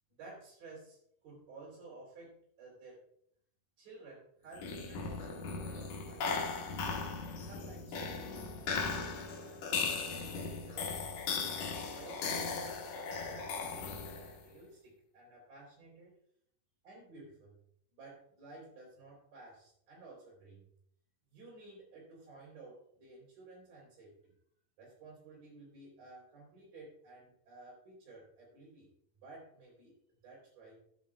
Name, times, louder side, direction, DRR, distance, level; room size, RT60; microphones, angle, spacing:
voice 1, 0.2-3.0 3.8-6.8 7.4-11.4 11.9-16.1 16.8-17.6 17.9-20.7 21.3-24.3 24.8-28.9 29.2-30.0 30.2-30.8, right 3 dB, 90° right, -8 dB, 5.4 m, -54 dB
sound 1, 4.5-14.4, left 4 dB, 70° left, 2.7 m, -38 dB
13.5 x 10.5 x 2.4 m, 0.69 s
omnidirectional pair, 3.8 m